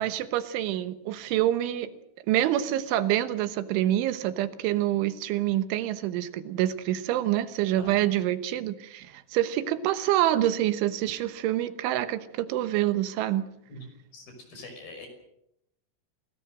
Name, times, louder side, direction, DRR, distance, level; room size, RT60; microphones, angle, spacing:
voice 1, 0.0-1.9 2.3-13.5, right 13 dB, 75° right, 12 dB, 3.3 m, -26 dB
voice 2, 14.1-15.1, left 1 dB, 45° left, 5 dB, 7.3 m, -44 dB
28.0 x 20.0 x 6.5 m, 0.78 s
omnidirectional pair, 6.0 m